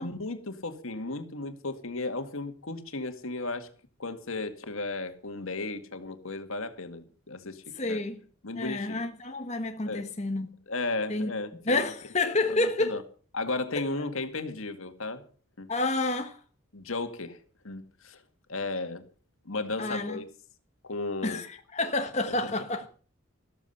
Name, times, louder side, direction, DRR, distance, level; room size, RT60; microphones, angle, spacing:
voice 1, 0.0-3.7 4.0-8.0 8.4-9.0 9.8-10.1 10.7-11.9 12.5-13.0 13.3-15.2 15.6-15.7 16.7-17.4 17.6-18.2 18.5-19.1 19.5-20.3 20.8-21.4 22.3-22.5, left 3 dB, 75° left, 2.1 m, -35 dB
voice 2, 7.7-8.2 8.6-10.5 11.1-11.3 11.6-13.0 15.7-16.4 19.8-20.2 21.2-22.9, left 2 dB, 30° left, 1.2 m, -29 dB
14.5 x 13.5 x 5.7 m
head